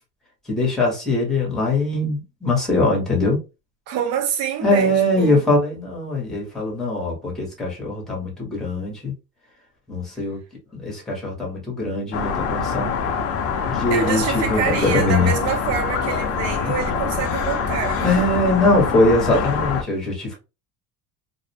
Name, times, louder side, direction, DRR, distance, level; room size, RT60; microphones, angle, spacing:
voice 1, 0.5-3.4 4.6-9.1 9.9-10.4 10.7-12.9 13.7-15.3 18.0-20.4, left 2 dB, ahead, 0.7 m, -21 dB
voice 2, 3.9-5.4 13.9-19.0, right 8 dB, 45° right, 0.5 m, -27 dB
sound 1, 12.1-19.8, left 6 dB, 40° left, 0.5 m, -25 dB
2.5 x 2.0 x 2.6 m
cardioid pair, 175°, 35 cm